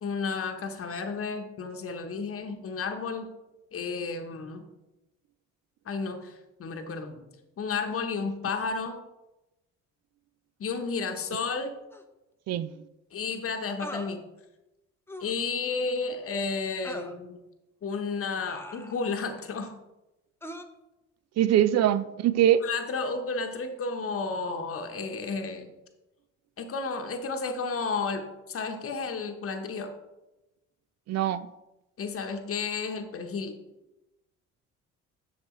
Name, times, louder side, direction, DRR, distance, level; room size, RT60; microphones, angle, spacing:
voice 1, 0.0-3.3 3.7-4.7 5.9-6.3 6.6-7.3 7.6-9.0 10.6-11.7 13.1-14.2 15.2-17.4 17.8-19.8 22.6-25.7 26.6-29.9 32.0-33.6, left 4 dB, 35° left, 1.1 m, -32 dB
sound 1, 11.9-12.0 13.8-14.1 15.1-15.4 16.8-17.2 18.4-19.2 20.4-20.6, left 1 dB, 5° left, 0.6 m, -41 dB
voice 2, 21.4-22.6 31.1-31.5, right 11 dB, 45° right, 0.5 m, -23 dB
7.0 x 6.4 x 3.1 m
hypercardioid pair, 50°, 37 cm